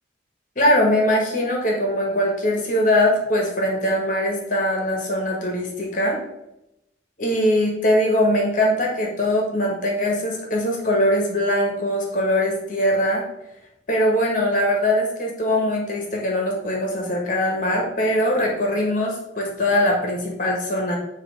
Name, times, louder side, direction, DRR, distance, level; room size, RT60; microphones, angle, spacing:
voice 1, 0.5-6.2 7.2-13.3 13.9-21.0, left 1 dB, 45° left, 0 dB, 1.3 m, -21 dB
7.5 x 3.0 x 4.9 m, 0.88 s
head